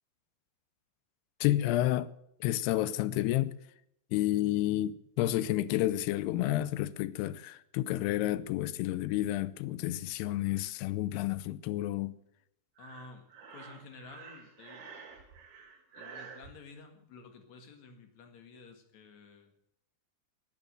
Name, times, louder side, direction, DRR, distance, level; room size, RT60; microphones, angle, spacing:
voice 1, 1.4-2.1 2.4-3.6 4.1-12.2, left 14 dB, 85° left, 2.7 m, -30 dB
voice 2, 12.8-15.0 15.9-19.5, left 4 dB, 50° left, 2.8 m, -52 dB
Breathing, 12.8-16.5, right 6 dB, 70° right, 4.3 m, -49 dB
15.0 x 8.9 x 7.8 m
omnidirectional pair, 4.6 m